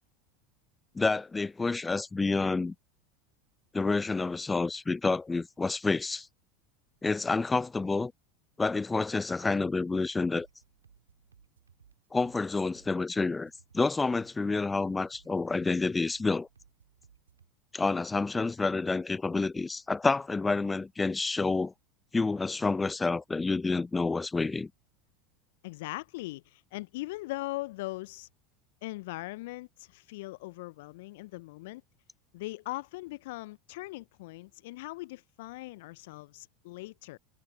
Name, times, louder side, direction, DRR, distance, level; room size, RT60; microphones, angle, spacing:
voice 1, 0.9-2.7 3.7-6.3 7.0-8.1 8.6-10.5 12.1-16.5 17.7-21.7 22.1-24.7, left 3 dB, 15° left, 0.7 m, -29 dB
sound 1, 9.9-17.5, right 6 dB, 80° right, 4.4 m, -62 dB
voice 2, 25.6-28.3 28.8-31.8 32.3-37.2, left 20 dB, 60° left, 0.4 m, -40 dB
figure-of-eight pair, 80°, 0 cm